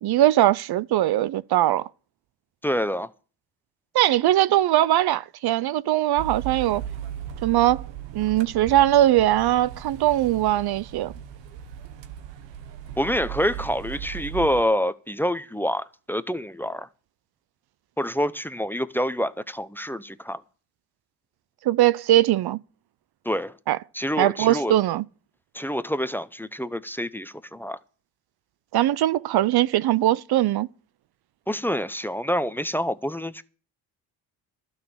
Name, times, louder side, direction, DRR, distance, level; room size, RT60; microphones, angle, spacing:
voice 1, 0.0-1.9 3.9-6.8 7.4-7.9 8.1-11.1 21.6-22.6 23.7-23.8 24.2-25.0 28.7-30.7, right 14 dB, 60° right, 0.6 m, -21 dB
voice 2, 2.6-3.1 13.0-16.9 18.0-20.4 23.2-23.5 23.9-24.7 25.5-27.8 31.5-33.4, equal, 5° left, 0.8 m, -27 dB
sound 1, 6.2-14.6, right 10 dB, 80° right, 1.5 m, -37 dB
12.0 x 6.5 x 9.0 m
supercardioid pair, 75°, 43 cm